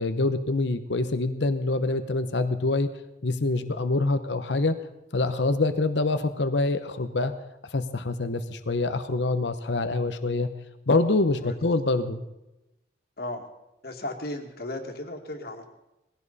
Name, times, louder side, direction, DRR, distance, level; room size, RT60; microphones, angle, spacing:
voice 1, 0.0-2.9 3.2-4.8 5.1-7.3 7.7-10.5 10.9-12.2, left 2 dB, 75° left, 10 dB, 0.9 m, -25 dB
voice 2, 13.2-13.5 13.8-15.7, left 1 dB, 60° left, 4 dB, 2.2 m, -35 dB
20.5 x 16.5 x 4.2 m, 0.93 s
head